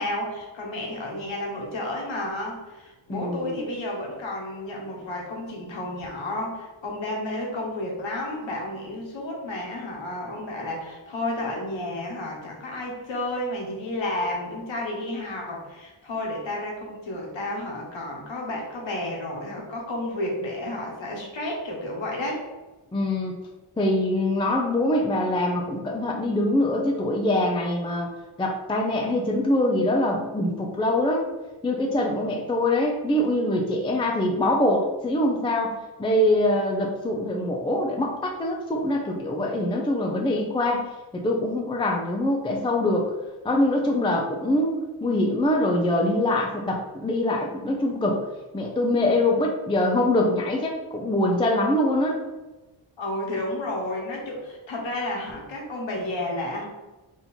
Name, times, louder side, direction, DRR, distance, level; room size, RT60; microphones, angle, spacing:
voice 1, 0.0-22.4 53.0-56.6, left 1 dB, 70° left, -1 dB, 1.3 m, -31 dB
voice 2, 3.1-3.5 22.9-23.3 23.8-28.1 28.4-31.3 31.6-40.8 41.1-43.1 43.4-48.2 48.5-52.2, left 1 dB, 10° left, 0 dB, 0.3 m, -24 dB
3.8 x 2.8 x 4.3 m, 1.1 s
wide cardioid pair, 145°, 47 cm